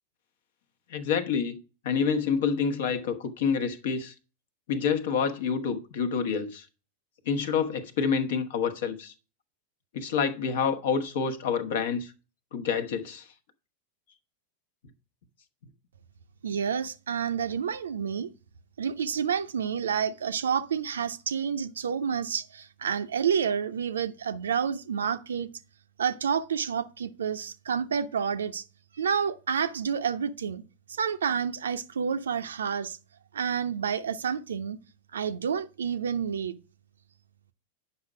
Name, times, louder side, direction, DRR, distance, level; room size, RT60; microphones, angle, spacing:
voice 1, 0.9-1.6 1.8-4.1 4.7-6.7 7.3-9.1 9.9-12.1 12.5-13.2, left 6 dB, 55° left, 1.0 m, -28 dB
voice 2, 16.4-18.3 18.8-25.5 26.0-28.6 29.0-30.6 31.0-33.0 33.3-34.8 35.1-36.6, right 7 dB, 65° right, 0.5 m, -29 dB
8.7 x 5.6 x 4.8 m
figure-of-eight pair, 90°, 0 cm